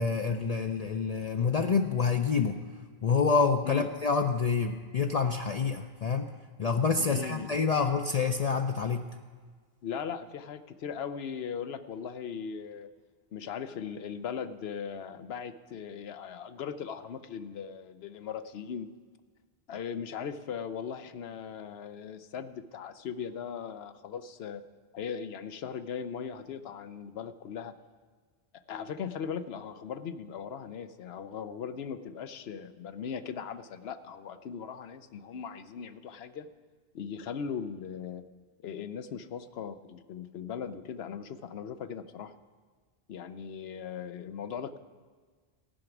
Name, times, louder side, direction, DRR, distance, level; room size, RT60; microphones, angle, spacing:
voice 1, 0.0-2.6 3.0-6.3 6.6-9.1, left 5 dB, 50° left, 4 dB, 0.6 m, -27 dB
voice 2, 7.0-7.5 9.8-12.9 13.3-18.9 19.7-24.6 24.9-27.7 28.7-36.5 36.9-38.2 38.6-42.3 43.1-44.8, left 7 dB, 80° left, 11 dB, 0.9 m, -39 dB
15.0 x 5.9 x 9.0 m, 1.5 s
omnidirectional pair, 1.0 m